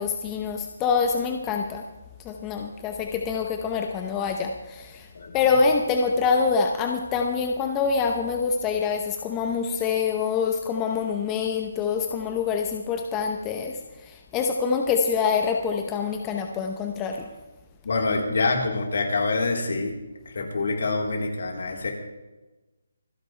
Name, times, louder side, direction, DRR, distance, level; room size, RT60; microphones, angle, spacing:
voice 1, 0.0-1.8 2.2-5.1 5.3-13.8 14.1-17.2, left 5 dB, 15° left, 3 dB, 0.8 m, -25 dB
voice 2, 17.8-19.9 20.3-21.9, left 3 dB, 65° left, 0 dB, 4.1 m, -26 dB
26.5 x 11.0 x 3.4 m, 1.1 s
hypercardioid pair, 170°, 0 cm